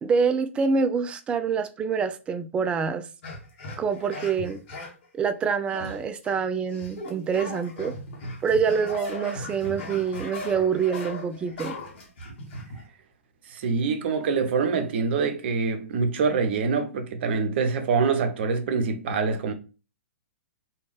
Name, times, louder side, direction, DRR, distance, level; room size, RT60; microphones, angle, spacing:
voice 1, 0.0-3.1 3.8-4.6 5.1-7.9 8.4-11.8, right 6 dB, 15° right, 0.3 m, -26 dB
sound 1, 3.2-5.1 5.7-6.4 6.7-12.9, left 2 dB, 45° left, 1.1 m, -38 dB
voice 2, 13.5-19.5, right 5 dB, 50° right, 0.6 m, -25 dB
3.4 x 2.3 x 3.3 m
figure-of-eight pair, 115°, 7 cm